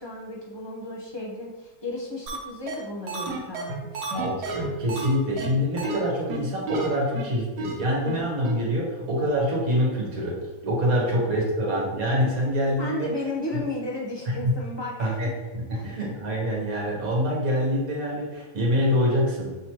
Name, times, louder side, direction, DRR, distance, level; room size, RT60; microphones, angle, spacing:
voice 1, 0.0-4.2 12.8-15.3 15.7-15.9, left 2 dB, 30° left, -4 dB, 0.5 m, -34 dB
sound 1, 2.3-2.4 2.7-2.8 3.1-5.1 5.4-5.5 5.8-6.0 6.3-6.4 6.7-6.9 7.2-7.3 7.6-7.7 8.1-8.2 8.4-8.5, right 3 dB, 80° right, 1.4 m, -31 dB
voice 2, 4.1-13.1 14.4-14.5 15.0-19.5, equal, 65° right, -2 dB, 1.6 m, -25 dB
6.1 x 3.0 x 2.9 m, 1.2 s
omnidirectional pair, 1.7 m